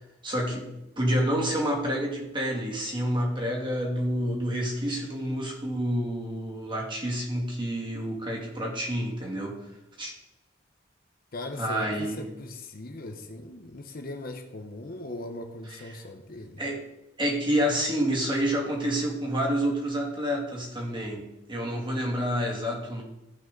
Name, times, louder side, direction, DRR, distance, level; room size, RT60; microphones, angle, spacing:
voice 1, 0.2-9.6 10.0-10.1 11.6-12.2 16.6-16.8 17.2-23.0, equal, 25° right, -2 dB, 2.6 m, -28 dB
voice 2, 11.3-16.6, left 2 dB, 50° left, 6 dB, 1.0 m, -39 dB
15.0 x 5.8 x 3.9 m, 0.89 s
head